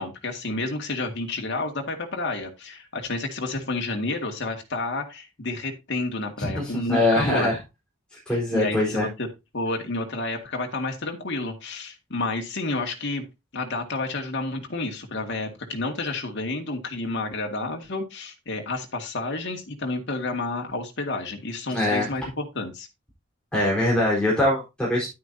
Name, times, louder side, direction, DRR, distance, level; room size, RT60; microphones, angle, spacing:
voice 1, 0.0-7.5 8.3-9.3 9.5-13.3 13.5-22.9, left 2 dB, 60° left, 3 dB, 2.1 m, -30 dB
voice 2, 6.6-7.6 8.3-9.1 21.7-22.1 23.5-25.1, left 1 dB, 5° left, -5 dB, 4.3 m, -22 dB
10.5 x 9.4 x 2.8 m, 0.24 s
head